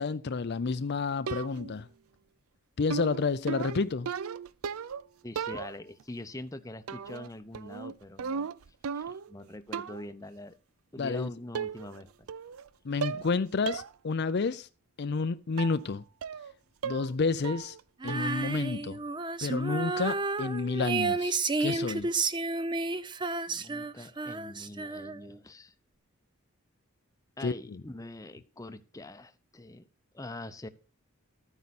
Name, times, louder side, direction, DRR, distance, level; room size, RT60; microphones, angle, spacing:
voice 1, 0.0-1.9 2.8-4.1 11.0-11.3 12.8-14.7 15.0-16.0 16.8-17.8 18.0-19.0 19.4-22.1 27.4-27.8, left 4 dB, 50° left, 0.5 m, -30 dB
sound 1, 1.3-1.8 2.9-5.1 5.4-6.0 6.9-7.3 7.5-9.3 9.7-10.1 11.0-11.1 11.5-12.0 12.3-12.7 13.0-13.3 13.7-13.9 14.3-14.4 15.6-15.8 16.2-16.5 16.8-17.2 17.4-17.8 18.1-18.4, right 6 dB, 80° right, 0.5 m, -36 dB
voice 2, 5.2-8.5 8.9-10.6 10.9-12.3 23.5-25.7 27.4-29.9 30.1-30.7, left 1 dB, 15° left, 0.7 m, -44 dB
Female singing, 18.0-25.4, right 3 dB, 20° right, 0.6 m, -32 dB
13.5 x 9.5 x 4.2 m
head